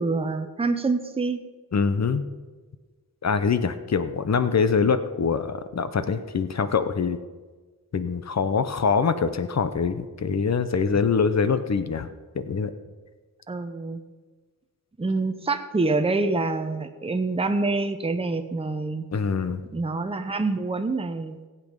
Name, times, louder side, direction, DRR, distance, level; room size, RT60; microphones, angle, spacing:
voice 1, 0.0-1.5 13.5-14.0 15.0-19.1 19.7-21.4, right 3 dB, 15° right, 7 dB, 0.7 m, -26 dB
voice 2, 1.7-2.2 3.2-7.2 7.9-12.1 12.3-12.7 19.1-19.6, left 5 dB, 50° left, 11 dB, 0.8 m, -24 dB
15.0 x 8.4 x 5.3 m, 1.4 s
wide cardioid pair, 135°, 36 cm